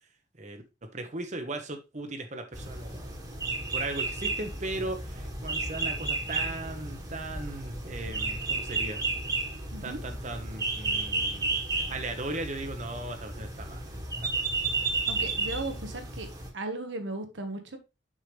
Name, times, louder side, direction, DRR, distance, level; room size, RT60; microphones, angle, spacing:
voice 1, 0.4-3.2 3.7-9.0 9.8-14.4, right 2 dB, 40° right, 1.0 m, -38 dB
sound 1, 2.5-16.5, right 3 dB, 20° right, 1.5 m, -33 dB
voice 2, 15.1-16.3 16.5-17.8, right 2 dB, 80° right, 1.4 m, -36 dB
6.3 x 5.7 x 3.3 m
head